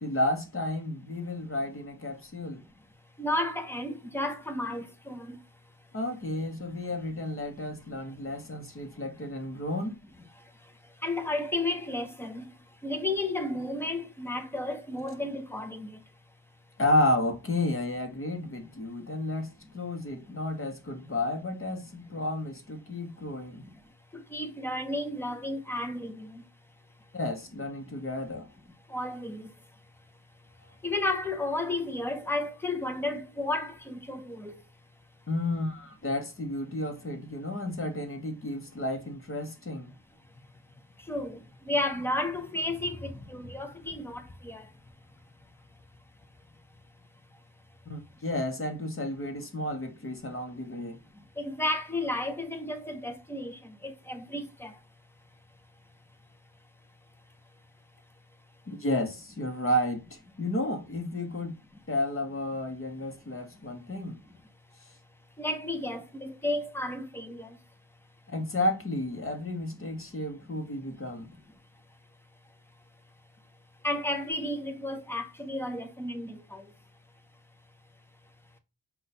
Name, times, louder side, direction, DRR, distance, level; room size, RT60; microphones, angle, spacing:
voice 1, 0.0-2.6 5.9-10.0 16.8-19.5 19.7-23.6 27.1-28.5 35.3-39.9 47.9-51.0 58.7-61.5 61.9-64.2 68.3-71.3, left 1 dB, 30° left, 0.8 m, -32 dB
voice 2, 3.2-5.4 11.0-12.5 12.8-15.9 24.3-26.4 28.9-29.4 30.8-34.6 41.1-41.4 41.7-44.6 51.4-54.7 65.4-67.5 73.8-76.6, left 1 dB, 5° left, 0.4 m, -32 dB
5.3 x 2.3 x 4.1 m
wide cardioid pair, 175°, 42 cm